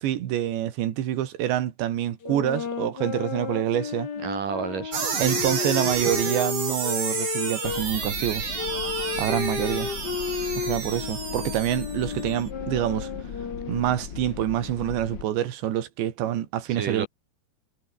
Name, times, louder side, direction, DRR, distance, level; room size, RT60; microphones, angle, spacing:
voice 1, 0.0-4.1 5.2-8.5 9.2-9.9 10.6-13.1 13.7-17.1, right 12 dB, 80° right, 4.2 m, -26 dB
sound 1, 2.2-7.8 8.5-14.1, left 6 dB, 85° left, 0.9 m, -33 dB
voice 2, 4.2-5.3 16.7-17.1, right 6 dB, 50° right, 3.8 m, -32 dB
sound 2, 4.9-12.4, right 6 dB, 35° right, 3.0 m, -31 dB
sound 3, 7.6-15.2, left 6 dB, 55° left, 1.3 m, -38 dB
omnidirectional pair, 5.1 m